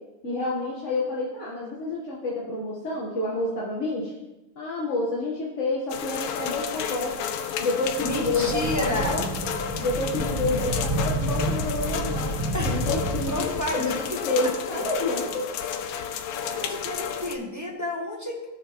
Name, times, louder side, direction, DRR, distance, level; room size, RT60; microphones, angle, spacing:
voice 1, 0.2-4.1 4.6-7.2 7.6-12.3 12.6-15.5, left 2 dB, 40° left, -4 dB, 1.3 m, -29 dB
sound 1, 5.9-17.4, left 8 dB, 90° left, 1.5 m, -32 dB
sound 2, 7.8-14.0, right 1 dB, 65° right, 3.1 m, -30 dB
voice 2, 8.0-9.2 12.5-12.8 13.3-14.8 16.4-18.5, left 1 dB, 15° right, -1 dB, 0.6 m, -31 dB
16.0 x 6.0 x 3.0 m, 1.0 s
omnidirectional pair, 2.4 m